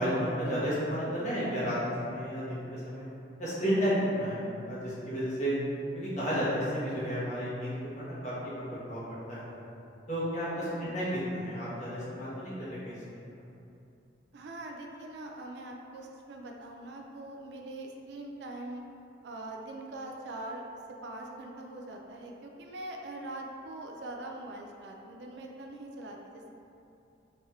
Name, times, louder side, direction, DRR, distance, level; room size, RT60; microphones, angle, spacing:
voice 1, 0.0-3.1 3.4-5.5 5.9-9.0 9.3-9.5 10.1-13.0, equal, 40° left, -10 dB, 1.1 m, -32 dB
voice 2, 10.5-11.0 14.3-18.8 19.2-20.6 21.0-26.6, right 2 dB, 65° right, 1 dB, 0.4 m, -42 dB
3.3 x 2.8 x 3.5 m, 2.7 s
head